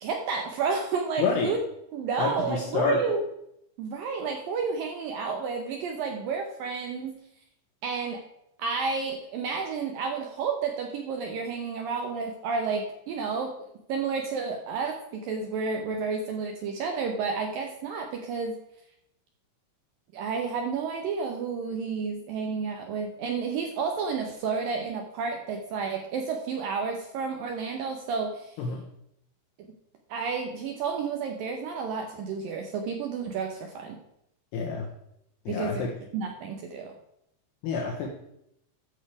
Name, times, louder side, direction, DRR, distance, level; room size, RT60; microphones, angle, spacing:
voice 1, 0.0-1.6 1.9-3.2 3.8-7.1 7.8-8.2 8.6-13.5 13.9-18.6 20.1-28.6 30.1-34.0 35.5-35.8 36.1-36.9, right 5 dB, 75° right, 3 dB, 2.1 m, -31 dB
voice 2, 1.2-1.5 2.2-3.0 28.6-28.8 34.5-34.9 35.5-35.9 37.6-38.1, left 5 dB, 70° left, -1 dB, 3.0 m, -28 dB
13.0 x 6.8 x 4.8 m, 0.78 s
omnidirectional pair, 5.3 m